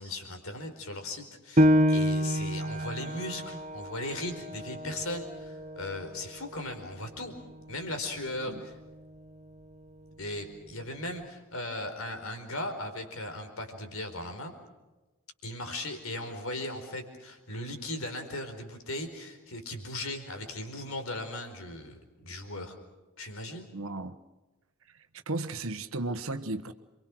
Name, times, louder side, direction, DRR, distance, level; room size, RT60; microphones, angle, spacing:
voice 1, 0.0-7.3 7.7-8.8 10.2-14.5 15.4-22.8 23.2-23.7, left 1 dB, 70° left, 6 dB, 4.6 m, -38 dB
Piano, 1.6-6.7 7.2-7.3 7.9-8.4, equal, 35° right, 0.9 m, -28 dB
voice 2, 23.7-24.2 24.9-26.7, right 2 dB, 70° right, 9 dB, 1.3 m, -35 dB
28.5 x 24.5 x 6.3 m, 1.1 s
head